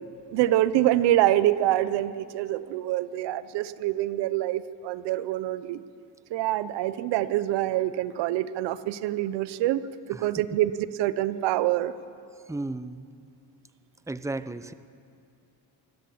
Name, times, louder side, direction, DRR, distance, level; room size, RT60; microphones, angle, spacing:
voice 1, 0.3-5.8 6.3-9.8 10.1-10.7 11.0-11.9, right 14 dB, 80° right, 15 dB, 0.9 m, -25 dB
voice 2, 12.5-13.0 14.1-14.7, right 2 dB, 5° right, 13 dB, 0.9 m, -34 dB
24.5 x 13.0 x 8.6 m, 2.6 s
supercardioid pair, 70°, 41 cm